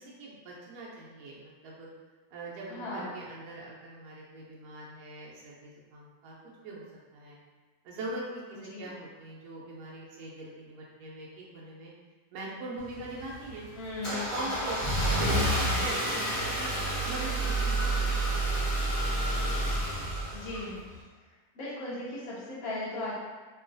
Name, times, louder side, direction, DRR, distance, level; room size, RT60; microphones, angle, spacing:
voice 1, 0.0-1.9 2.3-6.4 6.6-6.9 7.1-7.4 7.8-11.9 12.3-13.6 14.1-16.7 17.0-20.1, right 2 dB, 80° right, -4 dB, 1.1 m, -42 dB
voice 2, 2.7-3.1 8.7-8.9 13.8-14.5 20.3-20.9 21.2-23.1, left 2 dB, 60° left, -8 dB, 0.9 m, -37 dB
Car / Engine starting, 12.8-21.0, right 1 dB, 40° left, 1.0 m, -29 dB
3.0 x 2.3 x 2.5 m, 1.4 s
omnidirectional pair, 1.7 m